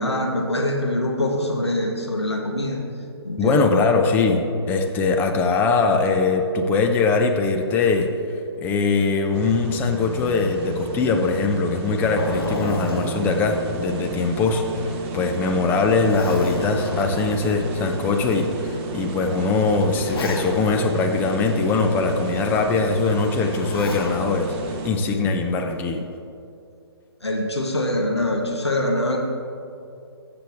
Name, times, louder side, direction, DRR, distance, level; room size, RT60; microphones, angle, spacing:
voice 1, 0.0-2.9 3.2-3.8 27.2-29.2, left 1 dB, 85° left, 1 dB, 1.5 m, -24 dB
voice 2, 3.4-8.1 8.6-24.5 24.8-26.0, left 4 dB, 15° left, 4 dB, 0.6 m, -21 dB
sound 1, 9.3-24.9, right 3 dB, 25° right, 0.9 m, -32 dB
Zipper (clothing), 11.7-14.6 15.0-15.1 15.6-17.5 18.2-18.3 19.3-20.8 23.3-24.2 25.6-26.0, left 2 dB, 60° left, 1.7 m, -32 dB
15.0 x 6.9 x 3.5 m, 2.6 s
figure-of-eight pair, 135°, 14 cm